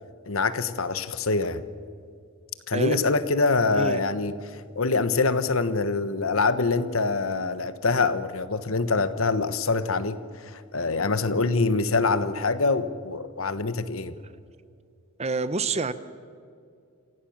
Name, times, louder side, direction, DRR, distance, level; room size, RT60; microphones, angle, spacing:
voice 1, 0.3-1.6 2.7-10.2 10.4-14.1, left 3 dB, 70° left, 13 dB, 1.2 m, -25 dB
voice 2, 15.2-15.9, right 3 dB, 30° right, 13 dB, 0.9 m, -27 dB
26.5 x 16.5 x 7.3 m, 2.4 s
head